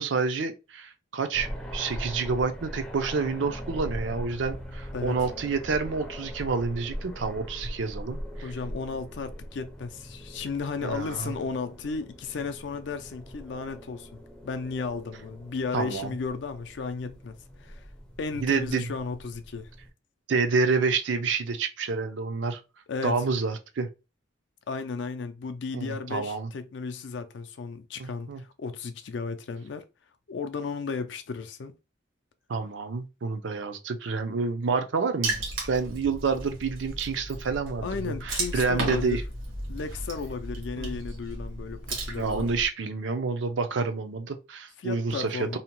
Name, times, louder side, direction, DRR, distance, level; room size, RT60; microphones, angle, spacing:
voice 1, 0.0-8.5 10.8-11.3 15.7-16.1 18.4-18.9 20.3-22.6 23.0-23.9 25.7-26.5 28.0-28.4 32.5-35.4 35.7-39.2 40.8-41.0 42.2-45.6, right 4 dB, 70° right, 0.5 m, -28 dB
sound 1, 1.3-19.9, equal, 5° left, 0.4 m, -41 dB
voice 2, 8.4-17.9 18.2-19.7 22.9-23.2 24.7-29.8 30.3-31.7 37.8-39.2 39.7-42.5 44.8-45.6, left 4 dB, 65° left, 0.4 m, -34 dB
Water / Splash splatter, 35.2-42.7, right 2 dB, 85° right, 1.0 m, -35 dB
2.7 x 2.1 x 2.9 m
head